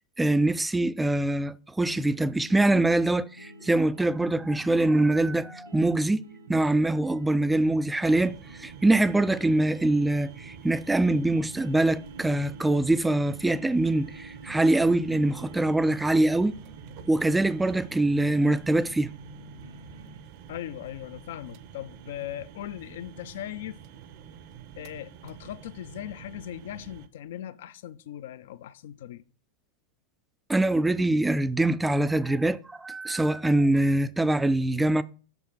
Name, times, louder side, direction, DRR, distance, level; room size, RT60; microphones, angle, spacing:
voice 1, 0.2-6.2 6.5-16.6 17.1-19.1 30.5-35.0, right 2 dB, 10° right, 0.3 m, -24 dB
sound 1, 1.9-20.2, right 1 dB, 75° right, 1.1 m, -48 dB
sound 2, 8.1-27.1, right 9 dB, 50° right, 0.6 m, -48 dB
voice 2, 20.5-23.8 24.8-29.2, left 11 dB, 60° left, 0.5 m, -39 dB
6.3 x 5.4 x 4.5 m
figure-of-eight pair, 90°, 0 cm